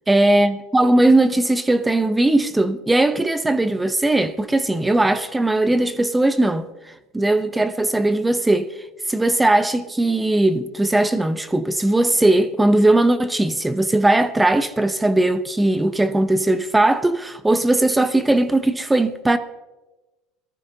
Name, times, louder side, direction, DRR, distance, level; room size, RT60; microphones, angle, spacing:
voice 1, 0.1-8.7 9.1-19.4, right 2 dB, 10° right, 0.8 m, -19 dB
21.0 x 14.0 x 2.8 m
supercardioid pair, 115°, 0 cm